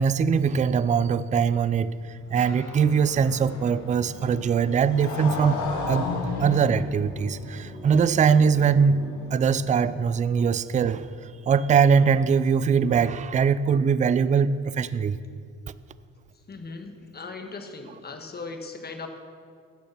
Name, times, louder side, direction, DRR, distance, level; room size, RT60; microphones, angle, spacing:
voice 1, 0.0-1.9 2.3-5.6 5.9-6.1 6.4-11.1 11.5-15.2, right 6 dB, 25° right, 15 dB, 0.3 m, -22 dB
Motorcycle, 1.8-9.9, left 3 dB, 75° left, 1.7 m, -35 dB
Guitar, 2.3-12.2, left 4 dB, 60° left, 1.3 m, -49 dB
sound 1, 5.2-12.3, equal, 5° left, 2.3 m, -48 dB
voice 2, 16.3-19.1, left 3 dB, 30° left, 5 dB, 1.3 m, -38 dB
10.5 x 7.0 x 5.9 m, 2.2 s
cardioid pair, 90°, 30 cm